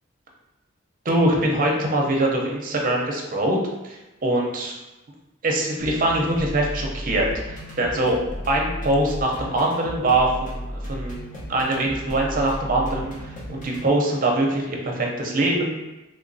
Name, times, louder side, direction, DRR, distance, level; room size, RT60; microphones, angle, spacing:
voice 1, 1.0-3.6 3.8-4.7 5.4-8.2 8.5-11.2 11.5-15.7, right 1 dB, 45° right, 0 dB, 0.5 m, -23 dB
sound 1, 5.8-13.9, equal, 40° left, 0.7 m, -34 dB
3.2 x 3.0 x 2.6 m, 1.0 s
head